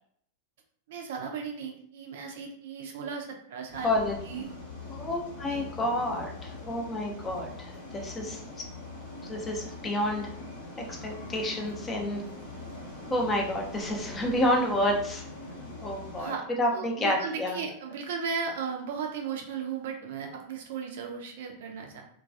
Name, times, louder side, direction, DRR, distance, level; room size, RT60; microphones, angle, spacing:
voice 1, 0.9-4.4 5.5-5.6 16.2-16.4 16.7-22.0, right 6 dB, 55° right, 2 dB, 0.4 m, -36 dB
sound 1, 3.7-16.3, left 2 dB, 65° left, 0.9 m, -42 dB
voice 2, 3.8-4.2 4.9-8.6 9.3-10.3 10.8-12.2 13.1-15.2 15.8-17.6, left 1 dB, 20° left, 1 dB, 0.5 m, -29 dB
2.2 x 2.2 x 2.5 m, 0.65 s
figure-of-eight pair, 90°, 0 cm